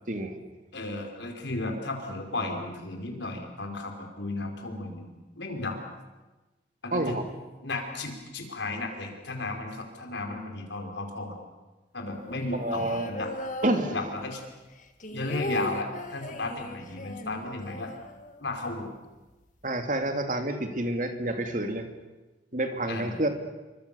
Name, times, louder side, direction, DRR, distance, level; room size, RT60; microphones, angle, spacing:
voice 1, 0.7-5.1 5.4-5.8 6.8-7.2 7.6-11.4 11.9-13.3 13.9-14.4 15.1-17.9 18.4-18.9 22.9-23.2, left 2 dB, 90° left, 3 dB, 5.2 m, -34 dB
voice 2, 6.9-7.2 12.5-13.1 13.6-13.9 19.6-21.9 22.5-23.3, right 1 dB, 45° right, 6 dB, 2.6 m, -28 dB
sound 1, 12.2-14.4 14.7-18.7 19.0-19.1 19.3-19.8, left 1 dB, 45° left, 1.9 m, -38 dB
28.5 x 24.5 x 7.1 m, 1.1 s
head